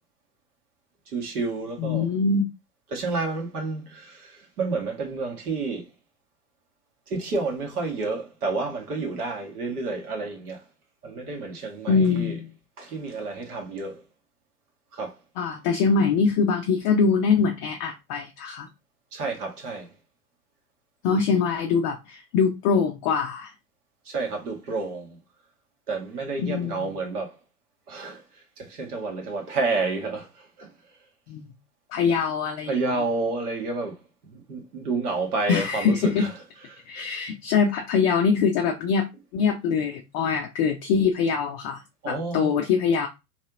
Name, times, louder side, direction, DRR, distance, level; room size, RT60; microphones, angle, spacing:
voice 1, 1.1-2.1 2.9-5.8 7.1-10.6 11.0-12.4 12.8-14.0 14.9-15.2 19.1-19.9 24.0-25.2 25.9-27.4 27.9-28.2 28.6-30.7 32.7-34.0 34.2-36.3 36.7-37.1 42.0-42.5, right 3 dB, 70° right, 1.6 m, -30 dB
voice 2, 1.8-2.5 11.9-12.5 15.4-18.7 21.0-23.5 26.4-26.9 31.3-31.5 31.9-32.8 35.5-36.3 36.9-39.1 39.3-43.1, left 5 dB, 25° left, 0.4 m, -23 dB
3.2 x 2.8 x 3.6 m
figure-of-eight pair, 95°, 47 cm